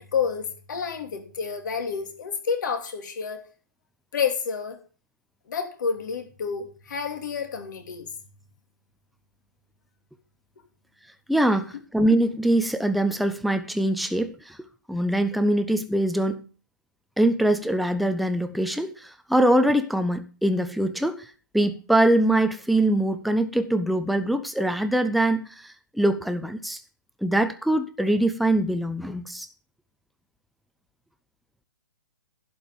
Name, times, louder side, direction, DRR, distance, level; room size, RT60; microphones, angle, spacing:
voice 1, 0.0-3.5 4.1-4.8 5.5-8.1, left 6 dB, 60° left, 2.8 m, -29 dB
voice 2, 11.3-14.6 14.9-16.4 17.2-21.3 21.5-26.8 27.2-29.5, right 1 dB, ahead, 0.7 m, -23 dB
11.0 x 5.3 x 7.6 m
hypercardioid pair, 130°, 11 cm